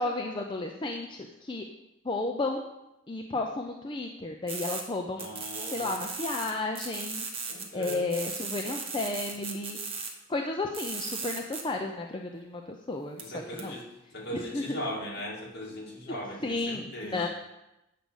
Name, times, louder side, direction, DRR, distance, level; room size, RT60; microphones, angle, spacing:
voice 1, 0.0-1.6 2.0-2.6 3.1-5.3 5.7-7.3 7.7-9.8 10.3-12.6 12.9-13.2 13.6-13.8 14.5-14.8 16.4-17.3, left 2 dB, 25° left, 2 dB, 0.6 m, -32 dB
sound 1, 4.5-4.8 5.2-6.5 6.8-10.1 10.7-11.6 13.2-13.3 13.6-13.7, right 5 dB, 30° right, 1.2 m, -36 dB
voice 2, 5.1-6.0 7.5-8.2 13.2-17.3, equal, 55° left, -3 dB, 2.4 m, -39 dB
8.4 x 5.3 x 6.3 m, 0.92 s
head